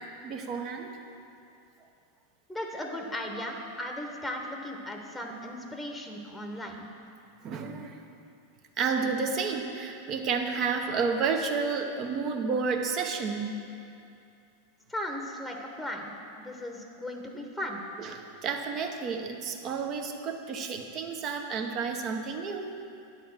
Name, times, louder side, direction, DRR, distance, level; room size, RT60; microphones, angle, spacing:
voice 1, 0.2-1.0 7.4-8.0 8.8-13.5 18.0-22.7, right 5 dB, 40° right, 4 dB, 0.9 m, -31 dB
voice 2, 2.5-6.9 14.9-17.8, left 1 dB, 5° left, 2 dB, 1.0 m, -37 dB
9.2 x 4.3 x 7.3 m, 2.6 s
hypercardioid pair, 100°, 0 cm